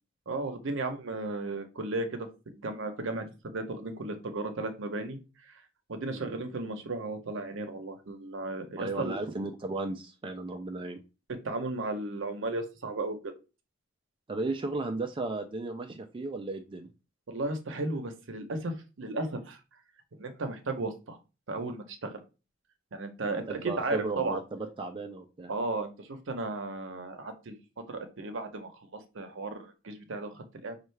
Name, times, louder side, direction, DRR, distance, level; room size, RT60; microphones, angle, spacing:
voice 1, 0.3-2.3 2.6-3.3 3.5-5.2 5.4-5.5 5.9-9.2 11.4-13.3 17.3-19.6 20.2-21.2 21.5-22.2 22.9-24.4 25.5-27.6 27.9-30.8, right 2 dB, 65° right, 7 dB, 0.7 m, -35 dB
voice 2, 8.8-11.0 14.3-16.9 23.2-25.5, right 2 dB, 25° right, 4 dB, 0.4 m, -35 dB
5.4 x 2.3 x 3.2 m, 0.30 s
head